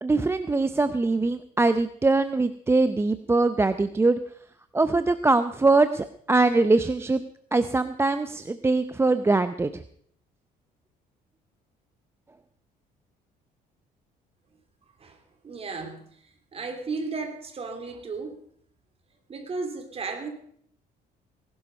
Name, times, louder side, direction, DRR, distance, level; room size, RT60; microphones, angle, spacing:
voice 1, 0.0-4.2 4.7-7.2 7.5-9.7, right 3 dB, 15° right, 11 dB, 0.6 m, -22 dB
voice 2, 15.4-16.0 16.5-18.4 19.3-20.3, right 4 dB, 35° right, 5 dB, 3.1 m, -34 dB
18.5 x 12.0 x 5.4 m, 0.62 s
cardioid pair, 110°, 17 cm